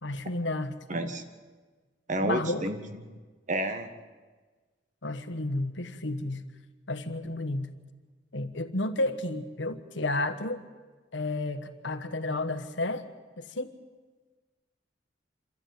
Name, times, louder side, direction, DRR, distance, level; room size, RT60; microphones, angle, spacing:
voice 1, 0.0-1.1 2.2-2.7 5.0-6.4 6.9-7.7 8.3-10.6 11.1-13.0 13.4-13.7, left 2 dB, 80° left, 9 dB, 1.4 m, -32 dB
voice 2, 0.9-1.2 2.1-3.0 3.5-3.9, right 1 dB, 45° right, 8 dB, 1.5 m, -30 dB
26.5 x 13.0 x 9.5 m, 1.4 s
head